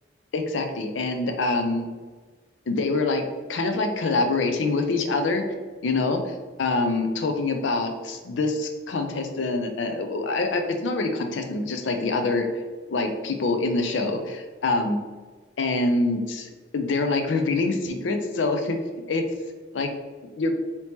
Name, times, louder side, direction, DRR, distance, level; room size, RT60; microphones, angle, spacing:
voice 1, 0.3-1.9 2.7-3.2 3.5-5.4 5.8-12.6 12.9-15.0 15.6-18.8 19.1-19.2 19.7-19.9 20.4-20.5, left 3 dB, 90° left, 5 dB, 0.5 m, -25 dB
2.9 x 2.8 x 3.4 m, 1.3 s
head